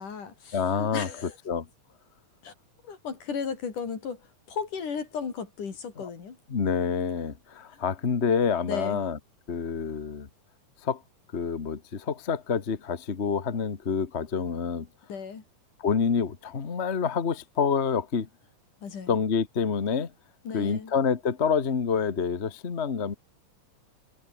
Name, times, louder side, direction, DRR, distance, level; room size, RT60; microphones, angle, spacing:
voice 1, 0.0-1.4 2.4-2.5 2.8-6.4 7.7-7.8 8.7-9.0 15.1-15.4 18.8-19.2 20.5-20.9, left 6 dB, 65° left, 5.3 m, -35 dB
voice 2, 0.5-1.1 1.5-1.7 6.0-6.1 6.5-9.2 9.5-10.3 10.8-11.0 11.3-14.9 15.8-18.3 19.1-20.1 20.5-23.1, left 6 dB, 45° left, 0.8 m, -27 dB
omnidirectional pair, 3.9 m